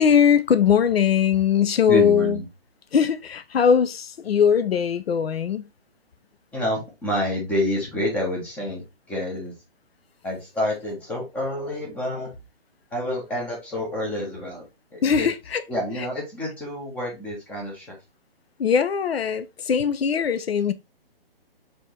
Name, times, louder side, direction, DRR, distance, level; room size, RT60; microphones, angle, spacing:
voice 1, 0.0-2.4 2.9-5.7 15.0-15.6 16.0-16.1 18.6-20.7, left 7 dB, 85° left, 0.6 m, -20 dB
voice 2, 1.9-2.5 6.5-8.8 9.1-9.5 10.2-12.3 12.9-14.7 14.9-15.3 15.7-18.0, left 1 dB, 5° left, 0.6 m, -28 dB
4.2 x 2.9 x 3.1 m
hypercardioid pair, 150°, 30 cm